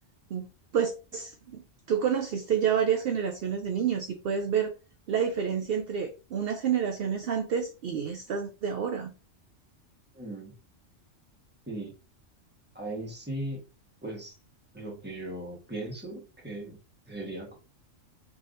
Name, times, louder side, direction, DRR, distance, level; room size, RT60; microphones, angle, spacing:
voice 1, 0.7-4.7 5.1-9.1, right 7 dB, 60° right, 0.6 m, -29 dB
voice 2, 10.1-10.5 11.7-11.9 12.7-13.6 14.0-14.4 14.7-16.8 17.1-17.6, right 1 dB, 10° right, 1.3 m, -38 dB
4.7 x 3.4 x 2.6 m
omnidirectional pair, 1.4 m